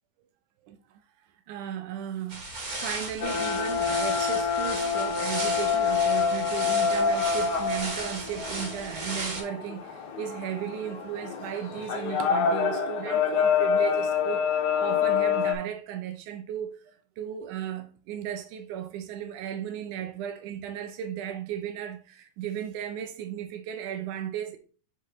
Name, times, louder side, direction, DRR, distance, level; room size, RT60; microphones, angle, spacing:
voice 1, 1.5-2.5 2.8-14.5 14.8-24.6, right 9 dB, 90° right, 2.2 m, -35 dB
sound 1, 2.3-9.4, right 2 dB, 35° right, 2.0 m, -36 dB
sound 2, 3.2-15.5, left 6 dB, 75° left, 2.8 m, -27 dB
7.8 x 4.9 x 3.0 m
omnidirectional pair, 3.4 m